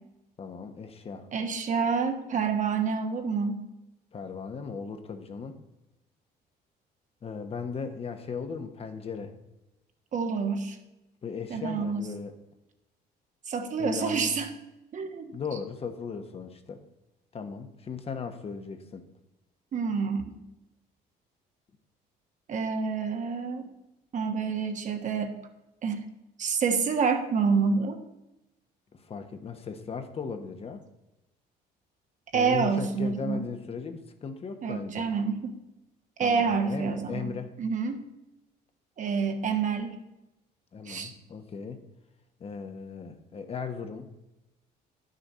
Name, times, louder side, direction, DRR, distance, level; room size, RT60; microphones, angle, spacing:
voice 1, 0.4-1.3 4.1-5.6 7.2-9.3 11.2-12.3 13.8-14.3 15.3-16.8 17.3-19.1 28.9-30.8 32.3-35.1 36.2-37.5 40.7-41.8 42.4-44.1, left 5 dB, 35° left, 7 dB, 1.1 m, -37 dB
voice 2, 1.3-3.6 10.1-10.8 11.5-12.0 13.5-14.5 14.9-15.3 19.7-20.4 22.5-23.7 24.1-25.3 25.8-26.0 26.4-28.0 32.3-33.4 34.6-35.6 36.2-37.2 37.6-38.1 39.0-40.0 40.9-41.1, right 5 dB, 45° right, 6 dB, 1.3 m, -28 dB
10.0 x 6.5 x 5.5 m, 0.95 s
cardioid pair, 110°, 17 cm